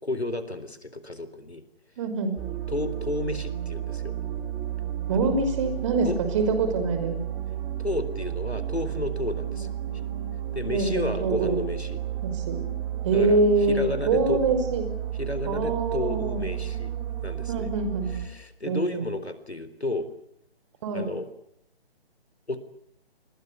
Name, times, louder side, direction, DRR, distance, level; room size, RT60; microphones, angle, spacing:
voice 1, 0.0-1.6 2.7-4.1 5.1-5.4 6.0-6.2 7.8-9.7 10.5-12.0 13.1-13.4 13.7-14.4 15.2-16.9 17.2-17.7 18.1-20.1 20.9-21.3 22.5-22.6, left 2 dB, 85° left, 13 dB, 3.8 m, -32 dB
voice 2, 2.0-2.4 5.1-7.2 9.5-9.6 10.7-11.6 12.2-12.6 13.0-14.8 15.5-16.5 17.5-18.1 18.7-19.0 20.8-21.2, right 3 dB, 30° right, 8 dB, 5.5 m, -25 dB
sound 1, 2.4-18.3, right 11 dB, 15° right, 3.7 m, -32 dB
29.0 x 22.5 x 8.4 m, 0.75 s
figure-of-eight pair, 140°, 32 cm